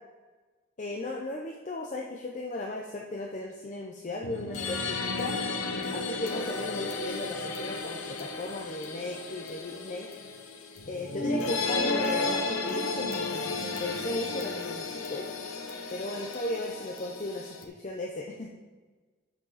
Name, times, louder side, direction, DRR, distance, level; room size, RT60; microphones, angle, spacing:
voice 1, 0.8-5.4 5.9-10.1 10.9-15.3 15.9-18.5, left 2 dB, 35° left, 0 dB, 0.6 m, -36 dB
sound 1, 4.2-17.7, left 3 dB, 85° left, 1.0 m, -33 dB
11.5 x 5.7 x 4.1 m, 1.3 s
head